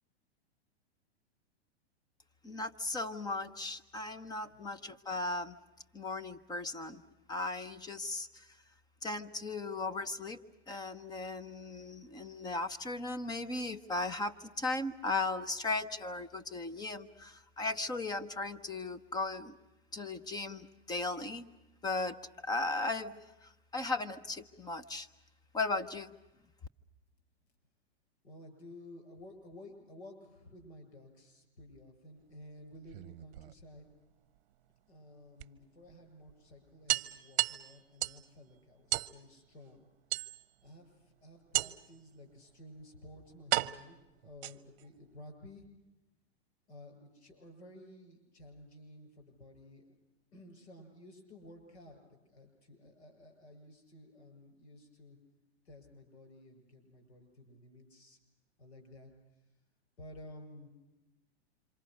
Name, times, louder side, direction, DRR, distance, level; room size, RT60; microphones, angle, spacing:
voice 1, 2.4-5.6 5.9-7.0 7.3-8.4 9.0-10.4 10.7-19.6 19.9-21.5 21.8-25.1 25.5-26.1, left 2 dB, 10° left, 12 dB, 0.8 m, -37 dB
voice 2, 28.2-33.9 34.9-39.9 40.6-40.9 41.2-44.0 44.2-45.7 46.7-49.9 50.3-55.2 55.7-58.2 58.6-59.1 60.0-60.7, left 1 dB, 80° left, 4 dB, 7.7 m, -53 dB
sound 1, 32.8-33.9 35.4-35.5 35.9-36.0 36.3-36.4 36.9-38.3 38.9-39.2 40.1-40.7 41.5-42.0 42.8-42.9 43.5-44.9, right 16 dB, 60° right, 0.8 m, -34 dB
27.0 x 26.0 x 6.4 m, 0.98 s
hypercardioid pair, 130°, 33 cm